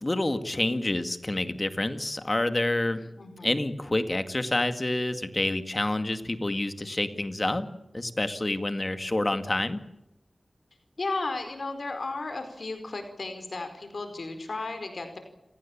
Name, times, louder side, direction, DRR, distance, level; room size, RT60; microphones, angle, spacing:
voice 1, 0.0-3.0 3.4-7.7 7.9-9.8, left 1 dB, 30° left, 9 dB, 2.1 m, -28 dB
voice 2, 3.2-3.6 11.0-15.2, left 3 dB, 70° left, 7 dB, 4.7 m, -34 dB
29.5 x 17.5 x 8.7 m, 0.91 s
wide cardioid pair, 70°, 0 cm